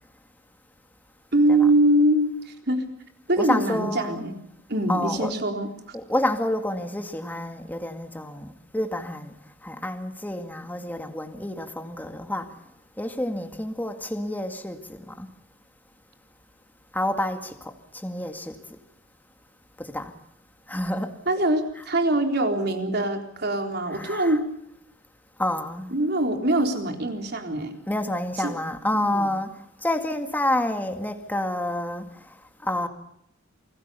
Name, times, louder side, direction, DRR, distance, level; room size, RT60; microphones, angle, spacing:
voice 1, 1.3-2.8 3.3-4.4 4.7-6.0 21.3-24.5 25.9-27.7 28.4-28.5 28.9-29.3, right 1 dB, 55° right, 3.9 m, -23 dB
voice 2, 3.4-4.3 4.9-5.4 5.9-15.3 16.9-18.8 19.8-20.2 20.7-21.2 21.7-21.9 23.9-24.4 25.4-26.0 27.9-32.9, left 1 dB, 10° left, 2.1 m, -29 dB
28.0 x 20.0 x 6.9 m
head